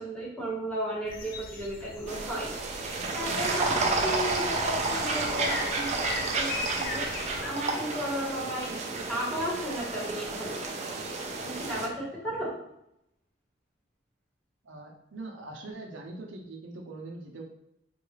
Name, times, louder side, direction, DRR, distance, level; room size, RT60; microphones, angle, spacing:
voice 1, 0.0-12.5, equal, 5° left, -6 dB, 1.1 m, -35 dB
sound 1, 1.0-7.5, left 4 dB, 50° left, 0.4 m, -40 dB
sound 2, 2.1-11.9, right 3 dB, 35° right, 0.4 m, -31 dB
voice 2, 14.6-17.4, right 2 dB, 85° right, 1 dB, 0.6 m, -42 dB
3.8 x 2.3 x 3.1 m, 0.79 s
head